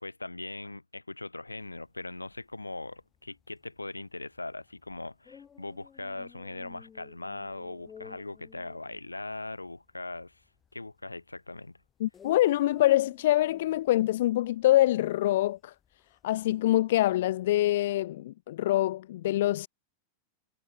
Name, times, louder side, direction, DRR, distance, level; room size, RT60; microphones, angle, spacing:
voice 1, 0.0-10.4 10.7-11.8, left 2 dB, 85° left, 1.6 m, -40 dB
sound 1, 1.5-17.6, left 7 dB, 20° left, 2.7 m, -55 dB
voice 2, 12.0-15.7 16.2-19.7, left 14 dB, 55° left, 0.4 m, -25 dB
figure-of-eight pair, 90°, 0 cm